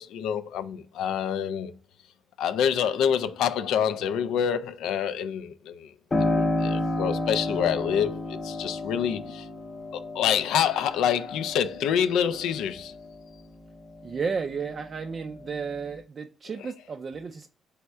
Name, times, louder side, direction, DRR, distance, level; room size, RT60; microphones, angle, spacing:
voice 1, 0.0-1.7 2.4-5.9 6.2-9.5 9.9-12.9, left 8 dB, 85° left, 0.3 m, -27 dB
Piano, 6.1-14.5 15.0-16.0, left 2 dB, 30° left, 0.6 m, -31 dB
voice 2, 14.0-17.5, right 5 dB, 40° right, 0.3 m, -33 dB
3.4 x 3.3 x 4.2 m
cardioid pair, 90°, 0 cm